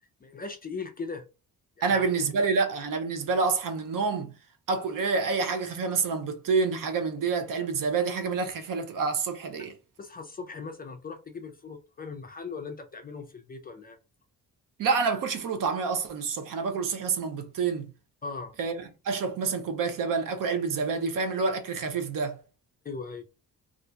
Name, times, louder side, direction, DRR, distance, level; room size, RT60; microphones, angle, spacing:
voice 1, 0.2-1.3 1.8-2.4 10.0-14.0 18.2-18.5 22.8-23.2, left 4 dB, 25° left, 0.3 m, -39 dB
voice 2, 1.8-4.3 4.7-9.7 14.8-17.9 18.6-22.4, right 4 dB, 65° right, 0.7 m, -28 dB
2.7 x 2.4 x 3.4 m
wide cardioid pair, 180°, 35 cm